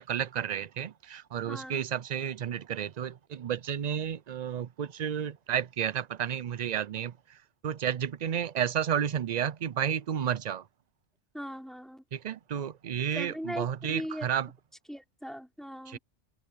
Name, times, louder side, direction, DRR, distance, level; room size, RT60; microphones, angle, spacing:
voice 1, 0.0-7.1 7.6-10.6 12.1-14.5 15.9-16.0, right 9 dB, 50° right, 0.5 m, -31 dB
voice 2, 1.4-1.8 11.3-12.0 13.1-14.3 14.9-16.0, equal, ahead, 5.1 m, -39 dB
omnidirectional pair, 1.1 m